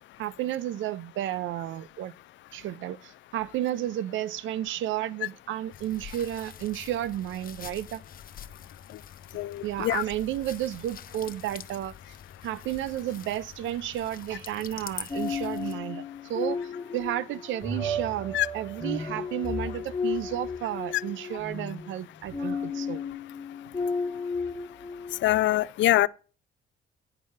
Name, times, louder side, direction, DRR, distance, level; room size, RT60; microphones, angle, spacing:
voice 1, 0.2-2.1 2.5-8.0 9.6-11.9 12.4-23.0, right 12 dB, 75° right, 0.5 m, -32 dB
sound 1, 5.7-15.7, left 8 dB, 45° left, 0.8 m, -45 dB
voice 2, 9.3-10.0 18.3-18.5 25.2-26.1, left 15 dB, 70° left, 0.4 m, -23 dB
sound 2, 15.1-25.4, left 3 dB, 20° left, 1.3 m, -33 dB
9.7 x 4.7 x 5.7 m
cardioid pair, 90°, 20 cm